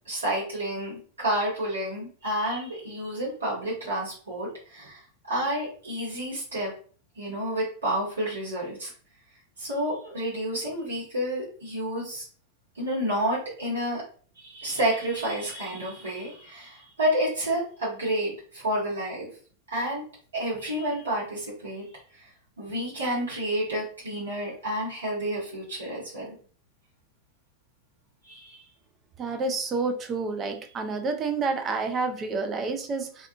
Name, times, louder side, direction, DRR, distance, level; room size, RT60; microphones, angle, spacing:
voice 1, 0.1-5.0 5.3-6.7 7.2-8.9 9.6-12.3 12.7-14.0 14.4-19.3 19.7-20.0 20.3-21.9 22.6-26.3 28.2-28.6, right 1 dB, 70° right, -6 dB, 1.1 m, -30 dB
voice 2, 29.2-33.3, right 4 dB, 25° right, 5 dB, 0.4 m, -29 dB
2.4 x 2.3 x 2.6 m, 0.44 s
figure-of-eight pair, 90°, 0 cm